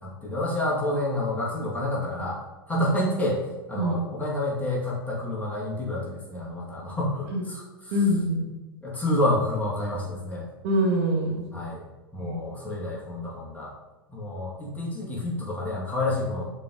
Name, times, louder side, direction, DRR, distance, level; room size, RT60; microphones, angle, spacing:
voice 1, 0.0-2.4 2.7-7.6 8.8-10.5 11.5-11.8 12.1-13.7 14.1-16.4, left 1 dB, 10° left, -4 dB, 2.3 m, -29 dB
voice 2, 7.9-8.5 10.6-11.5 12.2-12.4, equal, 55° right, -1 dB, 1.8 m, -24 dB
6.9 x 4.7 x 3.9 m, 1.2 s
hypercardioid pair, 95°, 12 cm